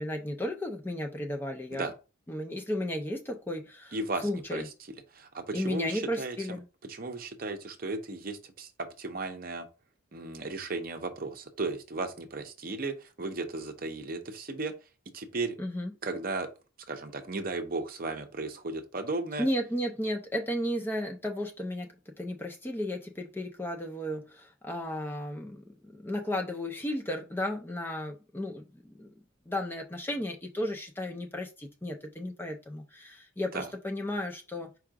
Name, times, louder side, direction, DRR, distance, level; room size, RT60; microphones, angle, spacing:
voice 1, 0.0-1.9 2.3-4.0 4.2-4.7 5.5-6.6 15.6-15.9 19.4-21.9 22.2-29.1 29.5-34.7, left 1 dB, 10° left, 0.4 m, -34 dB
voice 2, 3.9-4.7 5.1-6.6 6.9-9.7 10.1-14.7 15.1-15.6 16.0-16.5 16.9-19.5 33.5-33.7, right 3 dB, 45° right, 0.7 m, -35 dB
4.7 x 2.4 x 4.6 m
head